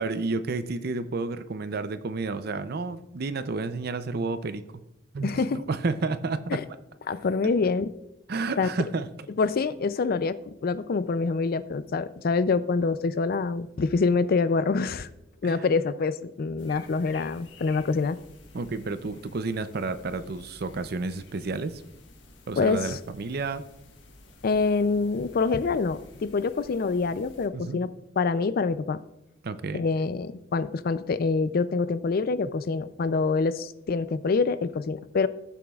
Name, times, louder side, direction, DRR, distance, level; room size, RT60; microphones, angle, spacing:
voice 1, 0.0-4.6 5.1-6.6 8.3-9.1 15.4-15.6 18.5-21.8 22.5-23.6 27.5-27.8 29.4-29.8, right 3 dB, 55° right, 13 dB, 0.5 m, -31 dB
voice 2, 5.2-5.6 6.5-6.6 7.1-7.9 8.6-8.7 9.4-10.4 10.6-15.1 15.4-18.2 22.6-23.0 24.4-27.9 28.2-29.0 29.7-35.3, left 4 dB, 50° left, 15 dB, 0.4 m, -26 dB
sound 1, 16.6-27.5, left 2 dB, 70° left, 1.6 m, -51 dB
17.5 x 7.1 x 2.4 m, 0.90 s
head